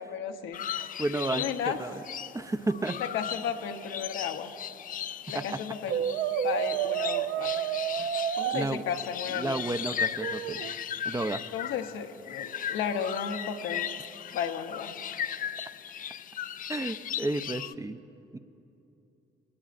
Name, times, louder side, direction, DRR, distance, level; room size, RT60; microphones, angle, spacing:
voice 1, 0.0-0.7 1.3-1.8 3.0-4.5 5.3-6.0 6.4-7.6 8.4-9.6 11.5-13.9 14.3-15.0, left 7 dB, 90° left, 5 dB, 0.9 m, -34 dB
sound 1, 0.5-17.7, left 9 dB, 45° left, 0.4 m, -37 dB
voice 2, 0.8-1.5 1.8-2.0 2.3-3.0 5.5-5.6 8.0-8.1 8.5-8.8 9.3-10.6 11.0-11.4 16.7-18.0 18.3-18.4, right 2 dB, 15° right, 10 dB, 0.5 m, -32 dB
Brass instrument, 5.9-8.7 10.2-10.8, right 10 dB, 75° right, 0.5 m, -30 dB
21.5 x 18.5 x 2.5 m, 2.8 s
cardioid pair, 90°, 20 cm